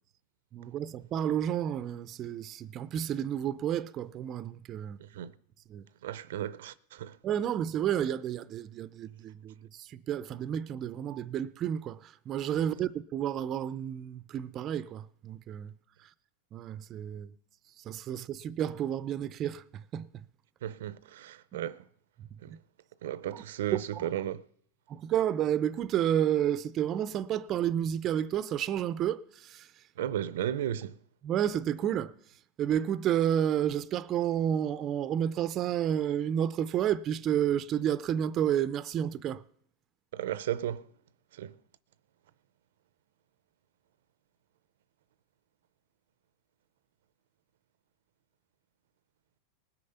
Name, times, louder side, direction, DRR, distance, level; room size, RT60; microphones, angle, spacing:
voice 1, 0.5-5.0 5.7-5.9 7.2-15.7 16.0-16.1 16.5-17.3 17.8-20.2 21.5-21.6 22.5-22.6 23.3-23.4 23.7-24.1 24.9-29.7 31.2-32.1 32.6-39.4, right 10 dB, 35° right, 0.5 m, -31 dB
voice 2, 5.0-5.3 6.0-7.2 20.6-21.8 22.4-22.6 23.0-24.4 30.0-31.0 40.1-40.8 41.3-41.5, right 11 dB, 80° right, 0.5 m, -34 dB
19.5 x 6.6 x 5.6 m
supercardioid pair, 135°, 0 cm